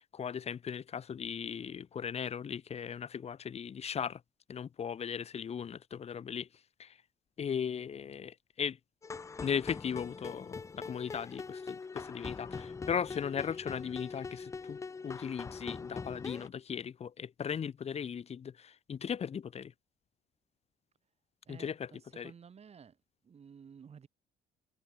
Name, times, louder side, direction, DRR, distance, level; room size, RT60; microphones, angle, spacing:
voice 1, 0.0-4.2 4.5-6.5 6.8-6.9 7.4-8.8 9.4-19.7 21.5-21.9 22.2-22.3, left 7 dB, 40° left, 1.5 m, -37 dB
sound 1, 9.0-16.5, left 4 dB, 20° left, 0.4 m, -42 dB
voice 2, 21.5-23.0 23.2-24.1, right 7 dB, 40° right, 5.7 m, -53 dB
cardioid pair, 110°, 17 cm